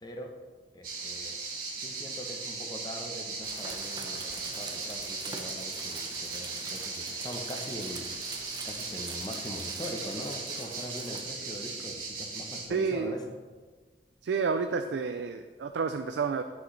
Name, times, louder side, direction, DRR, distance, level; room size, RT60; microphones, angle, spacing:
voice 1, 0.0-0.3 0.7-1.4 1.8-13.2, equal, 25° left, 3 dB, 0.9 m, -42 dB
sound 1, 0.8-12.7, right 3 dB, 55° right, 1.9 m, -38 dB
sound 2, 3.4-11.2, right 4 dB, 25° right, 0.7 m, -44 dB
voice 2, 12.7-13.2 14.2-16.4, right 5 dB, 80° right, 7 dB, 0.4 m, -30 dB
10.0 x 6.2 x 3.2 m, 1.4 s
head